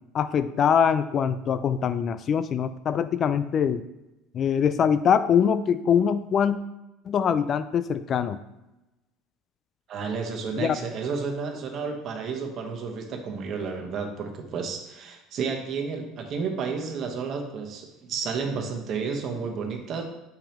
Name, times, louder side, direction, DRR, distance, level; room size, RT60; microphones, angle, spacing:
voice 1, 0.1-3.8 4.3-6.6 7.1-8.4 10.6-10.8, left 7 dB, 40° left, 13 dB, 0.3 m, -23 dB
voice 2, 9.9-20.0, right 5 dB, 50° right, 3 dB, 1.1 m, -31 dB
7.1 x 5.1 x 3.0 m, 0.96 s
supercardioid pair, 115°, 0 cm